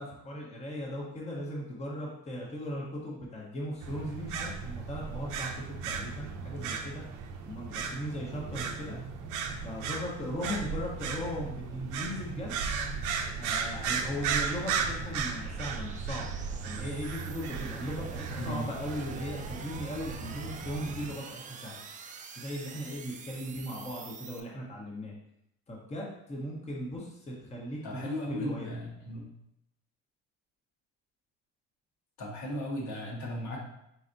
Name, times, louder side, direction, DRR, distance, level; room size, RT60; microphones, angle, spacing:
voice 1, 0.0-7.0 7.4-9.0 9.6-12.5 13.4-16.3 16.6-21.8 22.4-25.1 25.7-28.8, equal, 20° left, -3 dB, 1.0 m, -38 dB
sound 1, 3.8-21.1, right 5 dB, 75° right, 0.6 m, -36 dB
sound 2, 12.7-24.4, right 6 dB, 25° right, 0.4 m, -48 dB
voice 2, 27.8-29.3 32.2-33.6, left 1 dB, 65° left, -2 dB, 1.3 m, -36 dB
4.4 x 4.0 x 2.6 m, 0.79 s
cardioid pair, 110°, 31 cm